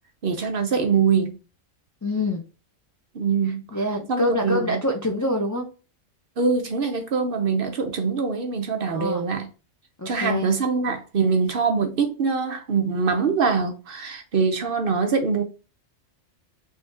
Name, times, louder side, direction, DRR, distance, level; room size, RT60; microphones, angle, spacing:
voice 1, 0.2-1.4 3.1-3.6 4.1-4.8 6.4-9.5 10.1-15.4, right 5 dB, 55° right, 0.7 m, -23 dB
voice 2, 2.0-2.4 3.7-5.7 8.9-9.3 10.0-10.5, left 1 dB, 30° left, 0.3 m, -25 dB
3.7 x 3.2 x 2.6 m
omnidirectional pair, 1.3 m